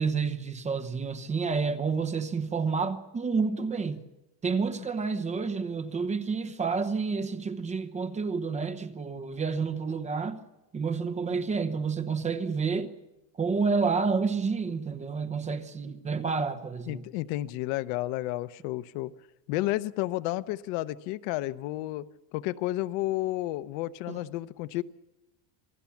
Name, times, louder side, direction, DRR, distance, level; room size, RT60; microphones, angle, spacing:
voice 1, 0.0-4.0 4.4-10.4 10.7-12.9 13.4-17.0 24.1-24.2, right 5 dB, 15° right, 0.9 m, -29 dB
voice 2, 16.9-19.1 19.5-22.0 22.3-24.8, left 17 dB, 70° left, 0.9 m, -31 dB
27.5 x 19.0 x 7.2 m
cardioid pair, 175°, 45 cm